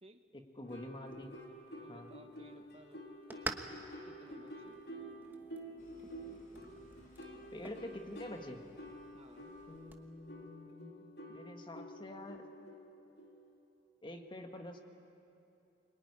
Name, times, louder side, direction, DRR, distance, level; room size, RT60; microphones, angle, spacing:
voice 1, 0.3-1.3 1.9-2.1 7.5-8.6 9.7-12.4 14.0-14.8, left 1 dB, 30° left, 4 dB, 1.6 m, -47 dB
sound 1, 0.6-13.6, equal, 70° left, 3.3 m, -50 dB
sound 2, 1.1-10.1, right 2 dB, 10° right, 1.2 m, -50 dB
voice 2, 1.8-3.0 4.1-4.9 9.1-9.6, right 1 dB, 35° right, 6 dB, 1.4 m, -59 dB
sound 3, 5.8-10.6, left 1 dB, 50° left, 4.0 m, -66 dB
25.0 x 22.5 x 9.8 m, 2.8 s
head